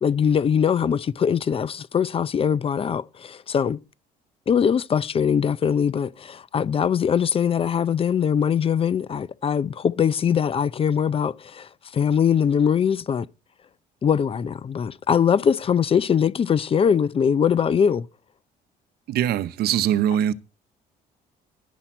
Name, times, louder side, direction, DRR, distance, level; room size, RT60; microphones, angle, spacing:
voice 1, 0.0-3.8 4.5-13.3 14.0-18.1, left 7 dB, 35° left, 0.5 m, -22 dB
voice 2, 19.1-20.3, right 10 dB, 70° right, 0.8 m, -22 dB
11.5 x 10.0 x 4.4 m
cardioid pair, 110°, 17 cm